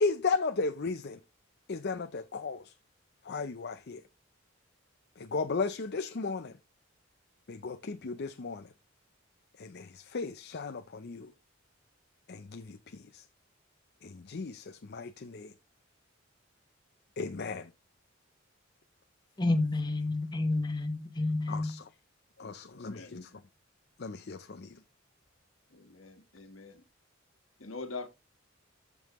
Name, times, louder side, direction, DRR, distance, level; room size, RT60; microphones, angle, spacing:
voice 1, 0.0-1.2 1.7-2.7 3.2-4.0 5.2-6.5 7.5-8.7 9.6-11.3 12.3-13.2 14.0-15.5 17.2-17.7 21.5-21.9 22.4-23.3 24.0-24.7, left 4 dB, 55° left, 0.6 m, -35 dB
voice 2, 19.4-21.7, left 2 dB, 20° left, 1.0 m, -29 dB
voice 3, 22.4-23.1 25.7-26.8 27.6-28.1, left 3 dB, 90° left, 1.5 m, -44 dB
14.0 x 5.4 x 3.0 m
head